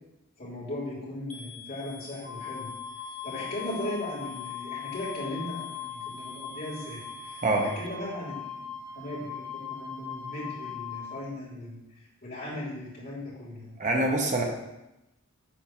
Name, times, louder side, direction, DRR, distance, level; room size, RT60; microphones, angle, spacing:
voice 1, 0.4-2.7 3.2-11.8 12.2-13.8, left 1 dB, 45° left, -6 dB, 2.9 m, -37 dB
sound 1, 1.3-7.9, left 8 dB, 65° left, 1.2 m, -48 dB
Wind instrument woodwind instrument, 2.2-11.2, left 7 dB, 55° right, 1.3 m, -40 dB
voice 2, 13.8-14.4, right 2 dB, 35° right, 1 dB, 0.9 m, -25 dB
8.7 x 3.5 x 6.0 m, 0.93 s
head